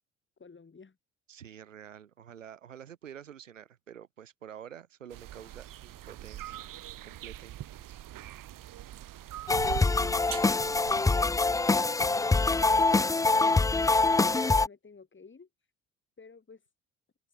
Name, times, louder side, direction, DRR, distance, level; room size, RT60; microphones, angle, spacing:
voice 1, 0.4-1.0 12.0-12.9 13.3-13.8 14.4-15.5 16.2-16.6, left 4 dB, 30° left, 7.5 m, -51 dB
voice 2, 1.3-6.7 7.1-8.0, right 9 dB, 90° right, 2.2 m, -48 dB
sound 1, 5.1-11.0, right 13 dB, 60° right, 3.2 m, -42 dB
sound 2, 9.5-14.7, left 3 dB, 10° left, 0.5 m, -24 dB
hypercardioid pair, 50°, 37 cm